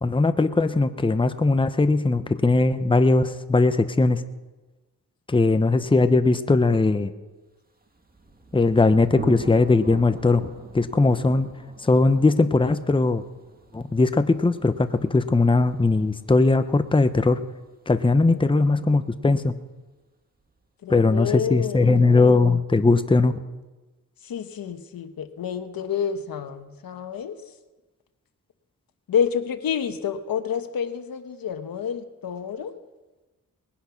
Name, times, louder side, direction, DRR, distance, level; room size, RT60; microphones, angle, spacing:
voice 1, 0.0-4.2 5.3-7.1 8.5-10.4 10.7-11.5 11.8-13.2 13.7-17.4 17.9-19.5 20.9-23.3, left 3 dB, 15° left, 10 dB, 0.8 m, -19 dB
Thunder, 7.8-19.3, right 3 dB, 25° right, 1.7 m, -44 dB
voice 2, 18.3-19.0 20.8-22.2 24.2-27.4 29.1-32.7, left 7 dB, 80° left, 8 dB, 1.2 m, -29 dB
20.0 x 10.0 x 5.8 m, 1.2 s
cardioid pair, 80°, 35 cm